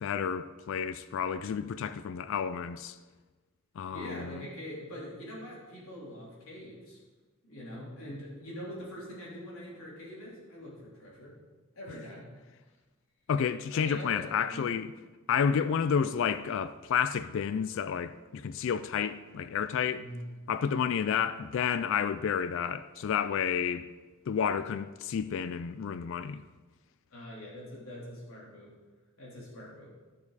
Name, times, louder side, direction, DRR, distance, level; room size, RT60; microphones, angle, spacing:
voice 1, 0.0-3.0 3.8-4.4 13.3-14.9 15.3-20.0 20.5-23.9 24.3-26.4, left 7 dB, 65° left, 0.3 m, -30 dB
voice 2, 3.9-7.0 7.4-11.3 11.7-12.3 13.7-14.8 19.9-20.3 27.1-28.7 29.2-29.9, equal, 80° left, 3.4 m, -44 dB
11.5 x 7.1 x 4.1 m
head